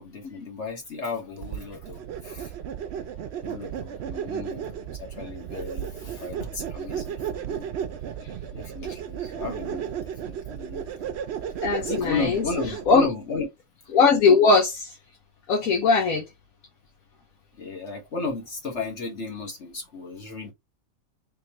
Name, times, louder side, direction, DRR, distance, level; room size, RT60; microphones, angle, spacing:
voice 1, 0.0-2.5 3.4-7.7 8.5-11.0 11.8-13.5 17.5-20.5, left 4 dB, 55° left, 1.6 m, -34 dB
sound 1, 1.4-13.1, right 9 dB, 60° right, 0.8 m, -34 dB
voice 2, 11.6-12.4 12.9-13.1 13.9-14.9 15.5-16.2, left 4 dB, 85° left, 1.3 m, -19 dB
3.6 x 3.5 x 2.9 m
omnidirectional pair, 1.4 m